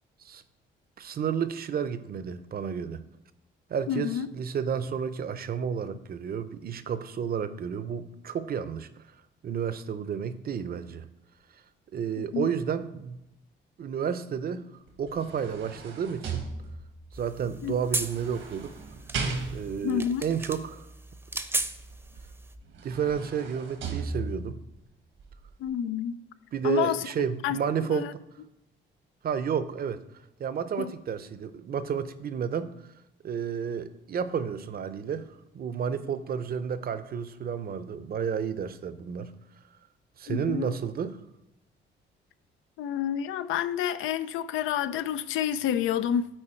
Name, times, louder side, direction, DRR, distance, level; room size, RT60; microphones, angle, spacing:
voice 1, 1.0-3.0 3.7-8.9 9.4-11.1 11.9-13.2 13.8-14.7 15.0-16.5 17.1-18.7 19.5-20.9 22.8-24.6 26.5-28.1 29.2-30.0 30.4-32.7 33.2-35.3 35.5-39.3 40.2-41.2, right 7 dB, 50° right, 13 dB, 0.6 m, -31 dB
voice 2, 3.9-4.3 12.2-12.5 17.6-17.7 19.8-20.2 25.6-26.2 26.6-27.1 27.4-27.6 27.9-28.1 30.8-30.9 40.3-40.7 42.8-46.3, left 9 dB, 90° left, 13 dB, 0.5 m, -29 dB
sound 1, 14.9-17.1 17.9-19.9 22.2-22.3 22.7-24.7 25.2-25.3, right 4 dB, 80° right, 1.4 m, -36 dB
sound 2, 17.1-22.6, right 2 dB, 10° right, 0.6 m, -36 dB
9.0 x 4.4 x 4.4 m, 0.87 s
cardioid pair, 90°, 20 cm